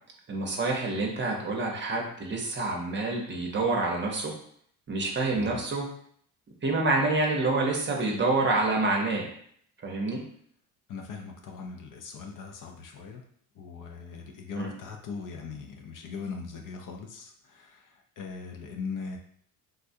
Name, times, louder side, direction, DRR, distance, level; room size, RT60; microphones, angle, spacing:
voice 1, 0.3-4.3 4.9-5.9 6.6-9.3 9.8-10.2 14.6-14.7, right 2 dB, 30° right, 0 dB, 0.7 m, -27 dB
voice 2, 5.3-5.6 10.9-13.2 13.6-19.2, left 5 dB, 50° left, 2 dB, 0.5 m, -40 dB
3.6 x 2.2 x 2.6 m, 0.63 s
cardioid pair, 110°, 40 cm